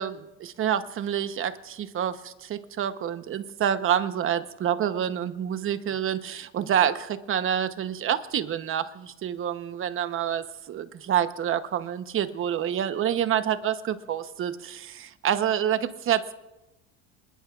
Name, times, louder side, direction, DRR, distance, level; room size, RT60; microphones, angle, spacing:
voice 1, 0.0-16.3, right 9 dB, 40° right, 10 dB, 1.0 m, -27 dB
26.0 x 20.5 x 2.5 m, 0.99 s
supercardioid pair, 120°, 32 cm